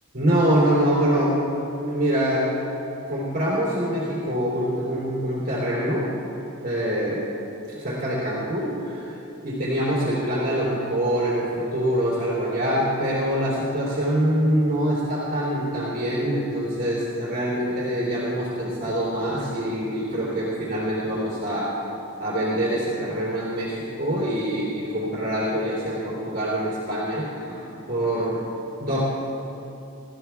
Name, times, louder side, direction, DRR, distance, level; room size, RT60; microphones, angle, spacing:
voice 1, 0.1-1.3 1.6-2.5 3.1-6.1 6.6-7.2 7.7-9.1 9.4-21.7 22.2-27.6 27.9-28.4 28.8-29.0, equal, 50° right, -8 dB, 3.2 m, -25 dB
21.5 x 13.5 x 2.4 m, 2.8 s
head